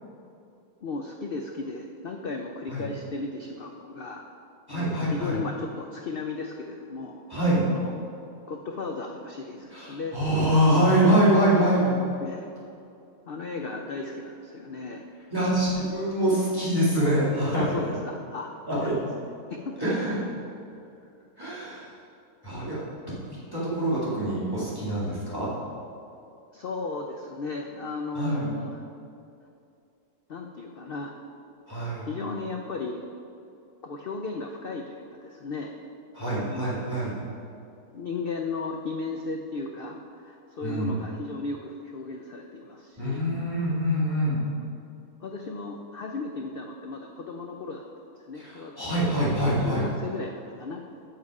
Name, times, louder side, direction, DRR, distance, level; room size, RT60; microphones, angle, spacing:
voice 1, 0.8-4.2 4.7-7.2 7.7-8.0 8.5-10.2 12.2-12.5 13.3-15.0 17.5-18.9 19.7-20.2 26.5-28.8 30.3-31.1 32.1-33.0 33.8-35.8 36.3-37.0 37.9-43.2 44.1-44.2 45.2-47.9 48.2-48.7 49.2-49.3 49.6-50.8, left 3 dB, 70° left, 2 dB, 0.5 m, -35 dB
voice 2, 4.7-5.4 7.3-7.6 9.7-11.9 15.3-17.6 18.7-18.9 19.8-20.2 21.4-21.9 22.4-22.8 23.5-25.5 28.2-28.5 31.7-32.1 36.1-37.2 40.6-41.0 43.0-44.4 48.4-49.8, right 1 dB, 15° right, -10 dB, 2.2 m, -24 dB
7.6 x 7.4 x 4.8 m, 2.6 s
omnidirectional pair, 1.6 m